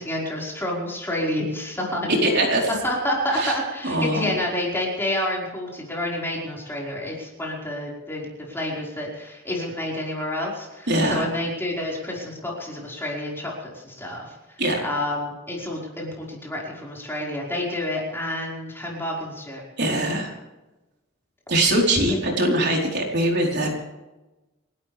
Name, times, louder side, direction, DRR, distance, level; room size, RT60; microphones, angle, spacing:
voice 1, 0.0-14.3 14.8-19.6 22.1-22.2, left 1 dB, 10° left, -3 dB, 5.1 m, -29 dB
voice 2, 2.2-2.7 3.4-3.5 3.8-4.3 10.9-11.2 14.6-14.8 19.8-20.3 21.5-23.7, right 1 dB, 55° right, -1 dB, 4.2 m, -22 dB
30.0 x 12.5 x 3.5 m, 1.1 s
head